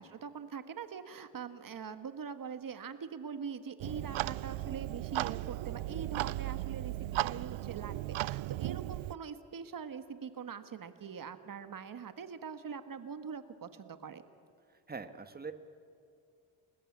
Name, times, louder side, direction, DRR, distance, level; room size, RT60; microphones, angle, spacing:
voice 1, 0.0-14.2, right 6 dB, 45° right, 10 dB, 1.5 m, -43 dB
Clock, 3.8-9.1, right 17 dB, 75° right, 0.6 m, -36 dB
voice 2, 14.9-15.5, right 4 dB, 20° right, 9 dB, 1.5 m, -42 dB
29.5 x 21.0 x 8.6 m, 2.4 s
cardioid pair, 150°, 47 cm